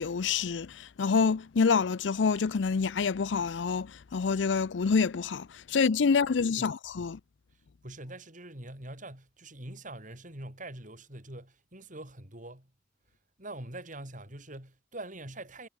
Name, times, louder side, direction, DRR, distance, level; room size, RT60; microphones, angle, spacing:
voice 1, 0.0-7.2, left 5 dB, 75° left, 0.5 m, -27 dB
voice 2, 7.8-12.7 13.4-15.7, right 1 dB, 45° right, 7.3 m, -44 dB
head